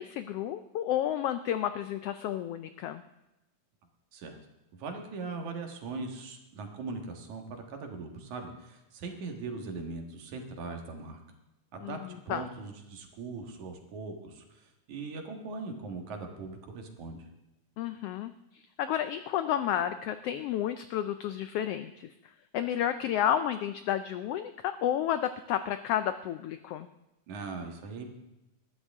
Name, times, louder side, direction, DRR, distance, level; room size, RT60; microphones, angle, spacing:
voice 1, 0.0-3.0 11.8-12.4 17.8-22.1 22.5-26.9, left 10 dB, 90° left, 10 dB, 1.3 m, -31 dB
voice 2, 4.7-11.2 11.7-17.3 27.3-28.1, right 3 dB, 80° right, 3 dB, 3.1 m, -40 dB
20.0 x 13.0 x 3.6 m, 0.95 s
omnidirectional pair, 3.3 m